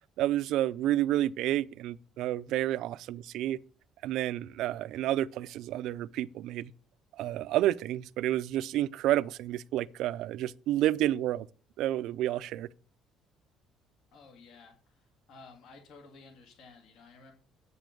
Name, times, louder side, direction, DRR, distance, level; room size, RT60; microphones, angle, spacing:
voice 1, 0.2-3.6 4.0-6.7 7.2-11.5 11.8-12.7, right 13 dB, 65° right, 0.4 m, -30 dB
voice 2, 14.1-17.3, left 4 dB, 65° left, 2.5 m, -54 dB
8.4 x 7.0 x 6.0 m
cardioid pair, 165°, 0 cm